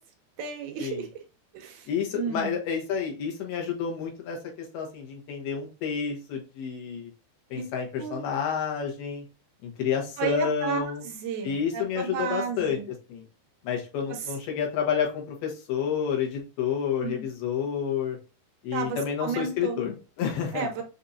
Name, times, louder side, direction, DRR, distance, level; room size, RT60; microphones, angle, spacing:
voice 1, 0.4-1.1 1.5-1.9 2.2-2.5 7.6-7.7 8.0-8.2 10.2-12.9 14.1-14.2 17.0-17.3 18.7-19.8 20.5-20.8, right 6 dB, 75° right, 4 dB, 2.5 m, -32 dB
voice 2, 1.9-7.1 7.5-9.2 9.6-11.0 11.4-13.2 13.6-18.2 18.6-20.7, left 7 dB, 75° left, 1 dB, 3.0 m, -30 dB
6.9 x 2.8 x 2.5 m, 0.32 s
omnidirectional pair, 4.7 m